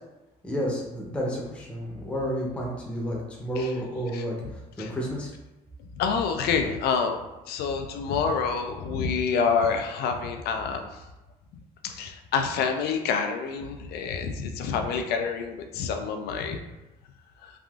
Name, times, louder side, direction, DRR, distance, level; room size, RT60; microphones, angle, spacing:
voice 1, 0.4-4.4 4.8-5.3, equal, 5° left, -3 dB, 0.6 m, -31 dB
voice 2, 4.1-4.5 4.8-4.9 6.0-7.2 7.5-10.9 11.8-16.6 17.4-17.5, left 5 dB, 70° left, 5 dB, 0.4 m, -27 dB
3.4 x 2.5 x 2.3 m, 1.0 s
cardioid pair, 110°, 17 cm